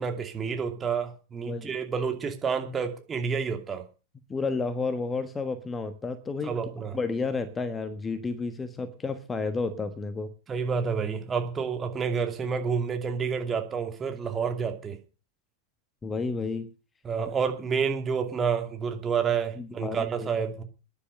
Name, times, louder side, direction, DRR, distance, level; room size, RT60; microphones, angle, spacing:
voice 1, 0.0-3.8 6.4-7.0 10.5-15.0 17.0-20.6, right 6 dB, 20° right, 5 dB, 2.5 m, -29 dB
voice 2, 1.4-1.8 4.3-6.6 6.9-10.3 16.0-16.7 19.6-20.3, left 4 dB, 15° left, 12 dB, 1.3 m, -31 dB
13.5 x 10.5 x 6.6 m, 0.35 s
figure-of-eight pair, 90°, 0 cm